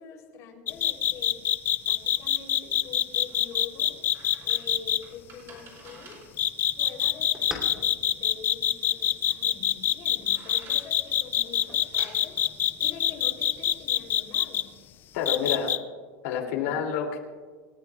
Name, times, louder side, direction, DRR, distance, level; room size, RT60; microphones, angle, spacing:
voice 1, 0.0-1.4 1.8-4.0 4.4-6.2 6.7-12.4 12.8-14.7 15.2-15.6 16.4-16.7, left 6 dB, 40° left, 1 dB, 3.5 m, -45 dB
sound 1, 0.7-5.0 6.4-14.6 15.3-15.8, left 11 dB, 25° left, 0.4 m, -24 dB
sound 2, 2.8-13.6, right 3 dB, 30° right, 4.5 m, -53 dB
sound 3, 5.1-14.1, equal, 10° right, 2.9 m, -50 dB
voice 2, 15.1-15.7 16.2-17.2, left 7 dB, 70° left, 2 dB, 2.8 m, -28 dB
27.5 x 14.0 x 2.4 m, 1.5 s
supercardioid pair, 165°, 8 cm